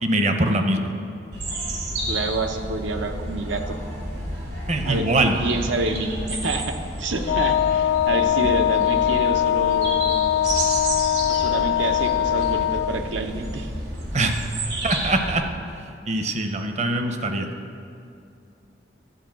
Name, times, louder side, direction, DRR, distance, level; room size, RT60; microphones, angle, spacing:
voice 1, 0.0-0.9 4.7-5.4 14.1-14.5 14.8-15.4 16.1-17.5, right 2 dB, 35° right, 5 dB, 0.7 m, -22 dB
sound 1, 1.3-15.4, right 1 dB, 65° right, 2.3 m, -31 dB
voice 2, 2.1-3.8 4.8-10.0 11.3-13.7 14.7-14.8, right 2 dB, 85° right, 5 dB, 0.8 m, -28 dB
Wind instrument woodwind instrument, 7.2-13.0, left 11 dB, 75° left, 0.3 m, -21 dB
11.5 x 4.6 x 7.4 m, 2.5 s
head